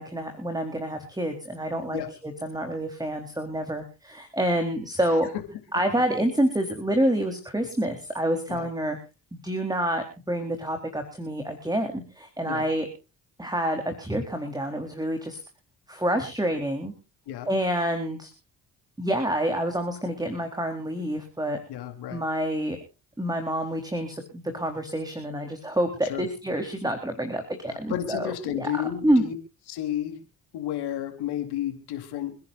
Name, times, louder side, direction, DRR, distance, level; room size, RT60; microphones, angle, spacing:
voice 1, 0.0-5.3 5.7-9.0 9.3-12.9 13.4-15.4 15.9-16.9 17.5-18.3 19.0-21.6 22.1-22.8 23.2-28.3 28.6-28.7 29.0-29.2, right 1 dB, 10° right, 5 dB, 4.0 m, -27 dB
voice 2, 5.7-6.3 8.5-8.7 12.5-12.7 17.3-17.5 21.7-22.2 26.0-26.3 27.7-29.3 29.7-30.2 30.5-32.4, left 11 dB, 75° left, 7 dB, 3.8 m, -32 dB
29.0 x 10.5 x 2.6 m, 0.32 s
supercardioid pair, 55°, 39 cm